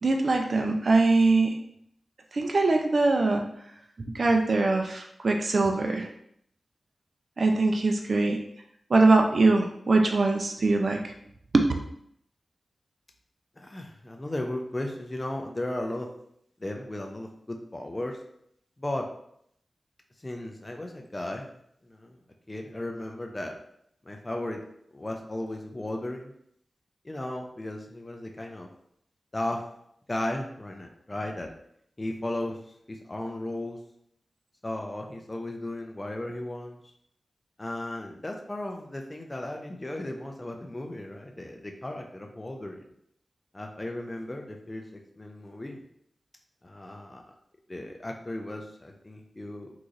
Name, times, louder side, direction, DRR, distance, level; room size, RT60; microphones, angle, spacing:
voice 1, 0.0-1.5 2.3-3.5 4.0-6.1 7.4-8.4 8.9-11.0 11.5-11.6, right 3 dB, 60° right, 3 dB, 0.4 m, -22 dB
voice 2, 13.6-16.1 16.6-18.2 18.8-19.1 20.2-21.5 21.8-22.2 22.5-23.6 24.0-24.7 24.9-26.3 27.0-28.7 29.3-29.6 30.1-31.5 32.0-32.6 32.9-33.8 34.6-36.8 37.6-42.9 43.5-44.9 45.2-45.8 46.6-47.2 47.7-49.7, left 1 dB, 25° left, 2 dB, 0.5 m, -35 dB
3.8 x 3.0 x 2.5 m, 0.71 s
cardioid pair, 60°, 0 cm